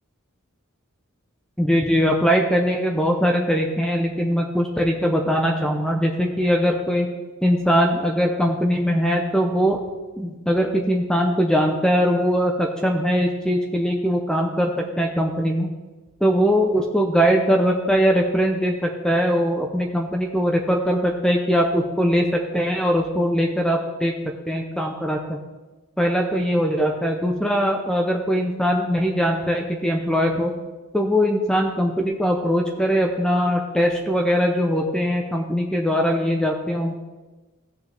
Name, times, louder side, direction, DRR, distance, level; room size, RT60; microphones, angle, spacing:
voice 1, 1.6-7.1 7.4-9.8 10.2-15.7 16.2-24.1 24.5-25.4 26.0-30.5 30.9-36.9, equal, 5° left, 1 dB, 0.8 m, -21 dB
16.5 x 6.7 x 3.5 m, 1.2 s
head